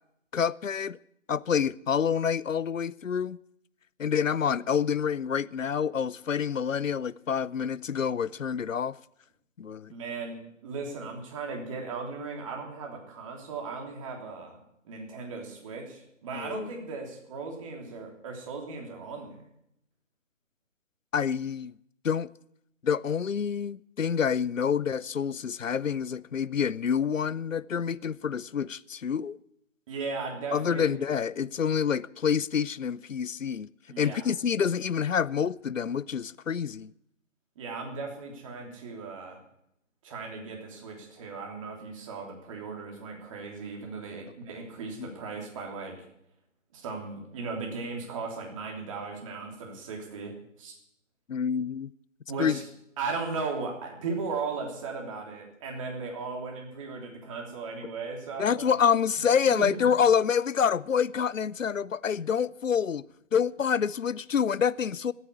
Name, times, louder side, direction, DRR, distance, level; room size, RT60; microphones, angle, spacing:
voice 1, 0.3-1.0 1.3-3.4 4.0-9.0 9.6-9.9 16.3-16.7 21.1-21.7 22.0-22.3 22.8-29.4 30.5-33.7 34.0-36.9 45.0-45.1 51.3-51.9 52.4-52.6 58.4-63.0 63.3-65.1, left 7 dB, 85° left, 0.6 m, -27 dB
voice 2, 9.9-10.4 10.6-14.6 14.8-19.4 29.9-30.9 33.9-34.3 37.5-39.4 40.0-45.9 46.7-50.7 52.3-52.6 53.0-58.7 59.5-59.8, right 4 dB, 25° right, 3.3 m, -37 dB
14.5 x 9.1 x 9.8 m
figure-of-eight pair, 150°, 38 cm